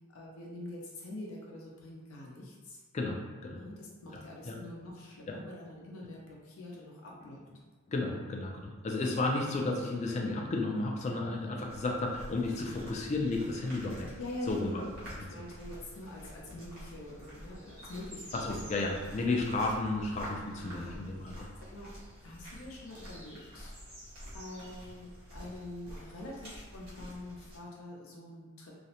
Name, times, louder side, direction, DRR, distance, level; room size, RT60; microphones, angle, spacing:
voice 1, 0.1-2.8 3.5-7.4 9.4-9.5 14.2-14.8 15.2-18.8 19.5-19.6 20.6-21.1 21.7-21.9 22.2-23.7 24.3-28.7, left 1 dB, 85° left, -3 dB, 0.5 m, -45 dB
voice 2, 2.9-3.6 4.4-4.6 5.3-5.4 7.9-14.2 14.5-14.9 15.2-15.3 18.3-21.5, left 2 dB, 35° left, 1 dB, 0.3 m, -33 dB
sound 1, 11.7-27.6, equal, 45° right, 0.9 m, -48 dB
2.4 x 2.0 x 2.8 m, 1.4 s
head